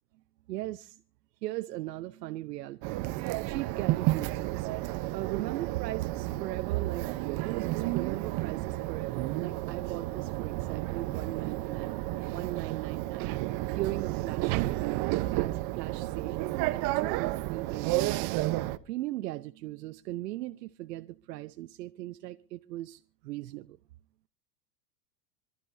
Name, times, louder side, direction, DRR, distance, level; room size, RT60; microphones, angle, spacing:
voice 1, 0.5-1.0 1.4-3.0 3.5-4.7 5.1-7.1 7.4-12.0 12.3-13.3 13.7-16.4 16.7-18.3 18.8-23.8, right 16 dB, 80° right, 0.9 m, -38 dB
sound 1, 2.8-18.8, right 17 dB, 50° right, 1.0 m, -31 dB
26.5 x 12.5 x 2.7 m
supercardioid pair, 115°, 48 cm